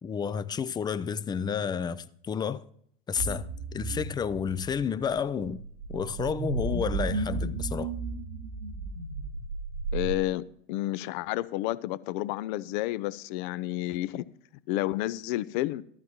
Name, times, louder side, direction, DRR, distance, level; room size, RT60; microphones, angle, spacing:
voice 1, 0.0-2.6 3.1-3.5 3.7-5.6 5.9-7.9, left 7 dB, 15° left, 0.4 m, -30 dB
sound 1, 3.2-10.2, right 3 dB, 65° right, 1.2 m, -34 dB
voice 2, 9.9-14.3 14.7-15.8, left 16 dB, 55° left, 0.6 m, -30 dB
14.0 x 12.5 x 3.0 m
hypercardioid pair, 85°, 30 cm